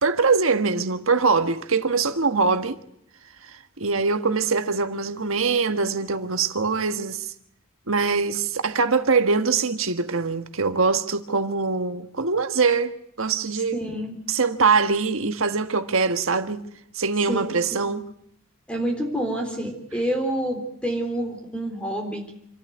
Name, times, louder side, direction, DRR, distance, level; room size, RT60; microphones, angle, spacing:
voice 1, 0.0-2.8 3.4-7.3 7.9-13.8 14.3-16.7 16.9-18.1, right 4 dB, 70° right, 1.5 m, -23 dB
voice 2, 13.7-14.2 17.3-17.9 18.7-22.3, right 1 dB, 5° left, 3.6 m, -28 dB
27.0 x 13.5 x 9.4 m
head